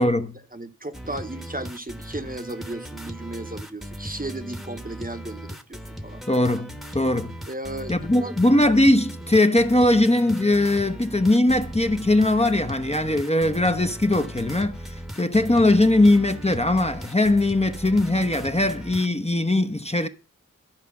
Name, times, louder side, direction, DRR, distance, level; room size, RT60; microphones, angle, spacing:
voice 1, 0.0-0.4 6.3-7.4 7.9-20.1, left 1 dB, 20° left, 0.8 m, -20 dB
voice 2, 0.5-6.2 7.5-8.3, right 2 dB, 25° right, 1.0 m, -35 dB
sound 1, 0.9-19.1, equal, ahead, 1.1 m, -38 dB
12.0 x 5.0 x 7.1 m
wide cardioid pair, 45°, 33 cm